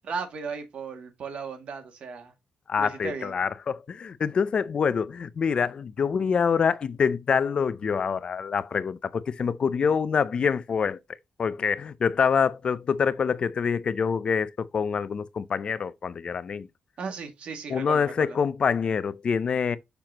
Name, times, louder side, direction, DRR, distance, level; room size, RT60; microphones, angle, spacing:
voice 1, 0.0-2.3 2.8-3.4 17.0-18.4, right 5 dB, 65° right, 2.2 m, -36 dB
voice 2, 2.7-11.0 11.4-16.7 17.7-19.8, left 6 dB, 50° left, 0.5 m, -26 dB
6.9 x 5.9 x 2.9 m
cardioid pair, 100°, 2 cm